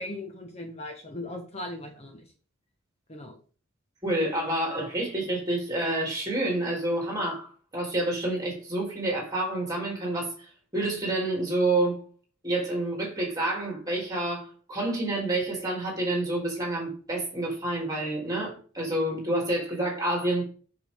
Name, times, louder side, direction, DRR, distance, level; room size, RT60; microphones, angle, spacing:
voice 1, 0.0-2.2 3.1-3.4, left 1 dB, 35° left, 1.1 m, -38 dB
voice 2, 4.0-12.0 12.4-20.5, right 1 dB, 20° right, 2.8 m, -28 dB
8.0 x 6.0 x 3.5 m
head